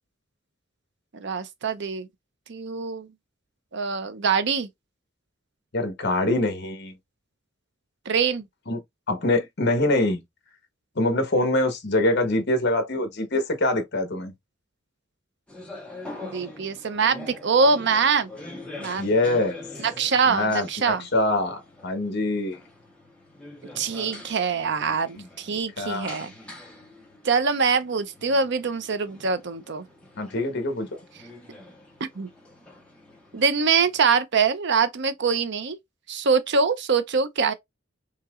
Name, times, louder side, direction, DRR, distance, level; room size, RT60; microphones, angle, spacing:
voice 1, 1.1-2.1 2.5-3.1 3.7-4.7 8.1-8.5 16.2-18.3 18.8-19.1 19.8-21.0 23.8-26.3 27.2-29.8 32.0-32.3 33.3-35.8 36.1-37.5, right 5 dB, 60° right, 0.6 m, -24 dB
voice 2, 5.7-6.9 8.7-8.8 9.1-10.2 11.0-14.3 19.0-19.6 20.3-22.6 25.8-26.3 30.2-31.0, left 2 dB, 60° left, 1.2 m, -24 dB
sound 1, 15.5-34.2, left 2 dB, 5° left, 1.4 m, -45 dB
5.6 x 2.9 x 2.4 m
head